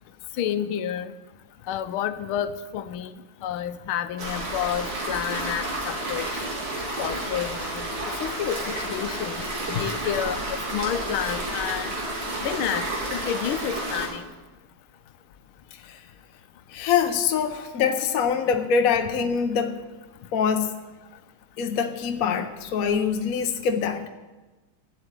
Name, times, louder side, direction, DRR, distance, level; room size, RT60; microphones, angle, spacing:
voice 1, 0.4-1.1 1.7-3.1 3.4-6.4 7.0-7.8 8.2-8.6 8.9-11.9 12.4-14.2, left 10 dB, 80° left, 12 dB, 1.5 m, -30 dB
sound 1, 4.2-14.1, right 1 dB, 75° right, 3.7 m, -31 dB
voice 2, 15.7-16.0 16.7-19.8 20.3-20.7 21.6-24.1, left 6 dB, 55° left, 6 dB, 1.0 m, -24 dB
13.0 x 7.9 x 8.8 m, 1.2 s
omnidirectional pair, 2.3 m